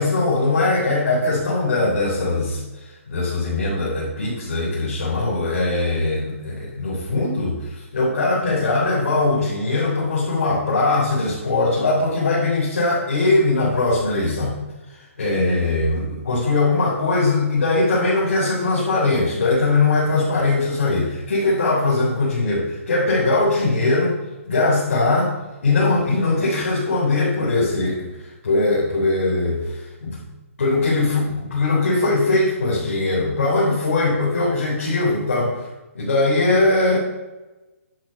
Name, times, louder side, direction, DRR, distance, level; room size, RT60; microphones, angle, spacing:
voice 1, 0.0-14.5 15.2-24.2 24.4-25.3 25.6-30.2 30.6-35.7 35.9-37.0, left 2 dB, 65° left, -7 dB, 3.8 m, -20 dB
10.5 x 6.5 x 5.7 m, 1.1 s
hypercardioid pair, 180°, 8 cm